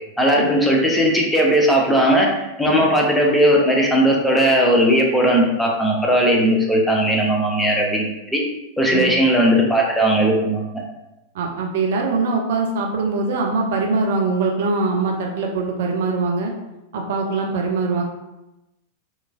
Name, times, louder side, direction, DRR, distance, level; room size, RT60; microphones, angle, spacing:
voice 1, 0.2-8.1 8.3-8.4 8.8-10.8, equal, 5° left, -2 dB, 0.5 m, -17 dB
voice 2, 11.3-16.5 16.9-18.0, right 3 dB, 55° right, 0 dB, 0.4 m, -22 dB
2.9 x 2.3 x 2.3 m, 0.96 s
figure-of-eight pair, 90°, 0 cm